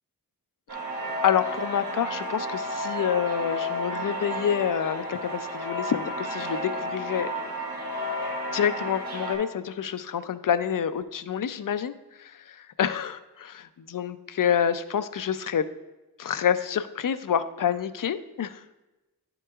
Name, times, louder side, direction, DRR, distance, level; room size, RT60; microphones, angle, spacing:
sound 1, 0.7-9.3, equal, 70° right, 2.1 m, -32 dB
voice 1, 1.2-7.3 8.5-13.6 13.9-15.6 16.2-18.6, left 8 dB, 60° left, 12 dB, 0.5 m, -27 dB
10.5 x 5.9 x 2.4 m, 1.1 s
wide cardioid pair, 85°, 37 cm